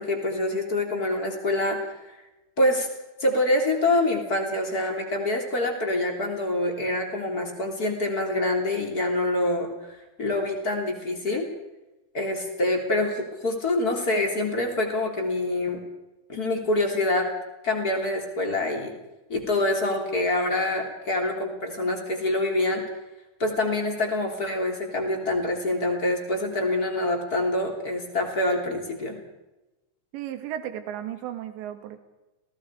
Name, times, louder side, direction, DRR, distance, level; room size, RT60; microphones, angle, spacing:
voice 1, 0.0-1.9 2.6-2.9 3.2-11.4 12.1-15.8 16.3-17.3 17.6-18.9 19.3-22.8 23.4-29.2, left 2 dB, 25° left, 1 dB, 3.1 m, -26 dB
voice 2, 30.1-32.0, right 11 dB, 75° right, 8 dB, 3.8 m, -34 dB
30.0 x 18.0 x 4.9 m, 1.0 s
omnidirectional pair, 5.4 m